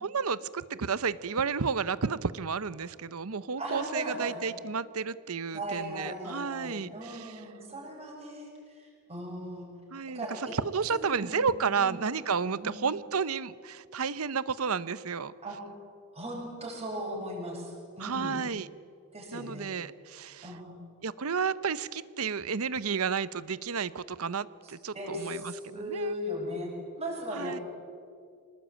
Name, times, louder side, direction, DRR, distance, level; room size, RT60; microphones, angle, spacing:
voice 1, 0.0-7.4 9.9-15.3 18.0-18.7 19.3-20.5 21.0-26.1 27.3-27.6, right 5 dB, 70° right, 17 dB, 0.8 m, -32 dB
voice 2, 3.6-4.5 5.5-9.7 10.1-10.4 10.9-12.0 12.6-12.8 15.4-15.6 16.1-18.4 19.1-19.7 20.4-20.8 24.9-26.7 27.0-27.6, equal, 30° right, -2 dB, 7.0 m, -38 dB
25.0 x 19.5 x 9.0 m, 2.2 s
head